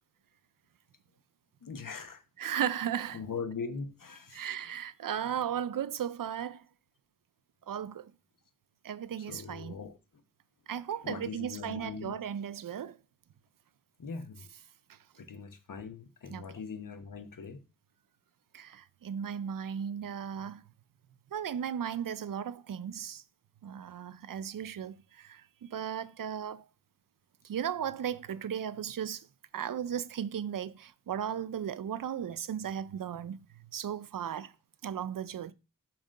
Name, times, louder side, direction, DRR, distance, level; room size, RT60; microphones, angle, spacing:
voice 1, 1.6-2.2 3.1-4.5 9.2-10.0 11.0-12.1 14.0-14.5 15.2-17.6, left 5 dB, 80° left, 1.0 m, -41 dB
voice 2, 2.4-3.2 4.3-6.6 7.7-8.1 8.8-9.8 10.7-13.0 16.3-16.4 18.5-20.6 21.3-23.2 23.6-26.6 27.4-29.3 29.5-33.4 33.7-34.5 34.8-35.5, right 9 dB, 85° right, 0.5 m, -36 dB
8.8 x 3.1 x 6.4 m
wide cardioid pair, 90°, 32 cm